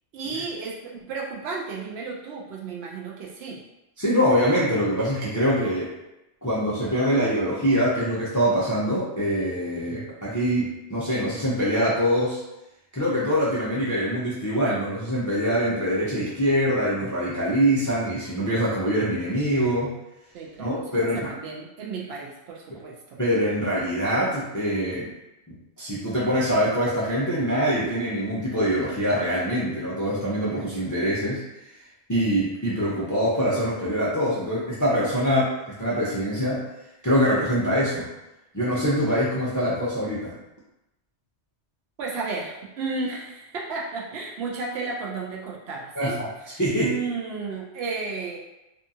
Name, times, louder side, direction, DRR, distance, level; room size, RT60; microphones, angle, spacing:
voice 1, 0.1-3.6 20.3-20.9 21.3-23.2 42.0-48.4, right 4 dB, 65° right, -3 dB, 0.8 m, -33 dB
voice 2, 4.0-5.9 6.4-12.4 12.9-19.9 20.6-21.3 23.2-25.1 25.5-31.4 32.1-36.6 37.0-38.1 38.5-40.4 46.0-46.3 46.6-47.0, equal, 30° left, -8 dB, 0.3 m, -24 dB
2.6 x 2.3 x 2.7 m, 0.94 s
omnidirectional pair, 1.2 m